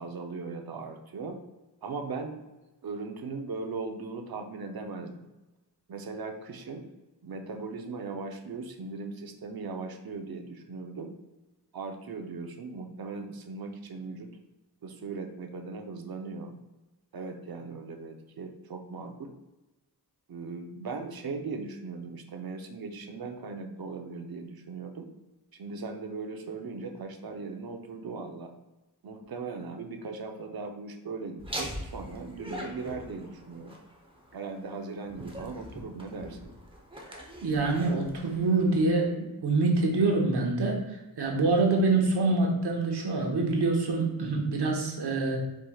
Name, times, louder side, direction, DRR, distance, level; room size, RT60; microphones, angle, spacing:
voice 1, 0.0-1.4 1.8-2.4 2.8-5.3 5.9-6.9 7.2-11.1 11.7-14.3 14.8-16.6 17.1-19.3 20.3-25.1 25.5-28.5 29.0-33.8 34.3-36.5, right 4 dB, 65° right, 5 dB, 0.7 m, -38 dB
Laughter, 31.4-39.0, equal, 15° right, 0.9 m, -43 dB
voice 2, 37.4-45.4, right 3 dB, 80° right, 0 dB, 1.1 m, -26 dB
4.7 x 4.4 x 2.3 m, 1.1 s
wide cardioid pair, 75°, 39 cm